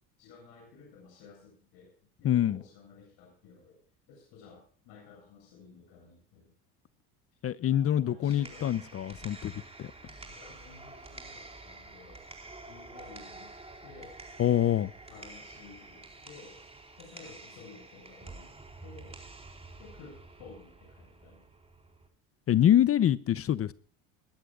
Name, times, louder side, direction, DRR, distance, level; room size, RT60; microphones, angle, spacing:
voice 1, 0.2-1.9 2.2-3.8 4.1-6.6 7.7-8.9 10.2-12.3 12.6-13.5 13.8-14.2 15.1-16.6 17.0-18.5 18.8-19.2 19.8-21.4, left 4 dB, 70° left, 7.7 m, -53 dB
voice 2, 2.2-2.6 7.4-9.5 9.8-9.9 14.4-14.9 22.5-23.7, left 11 dB, 35° left, 0.7 m, -25 dB
sound 1, 8.1-22.1, right 3 dB, 15° right, 4.4 m, -49 dB
22.0 x 13.5 x 2.4 m
supercardioid pair, 95°, 38 cm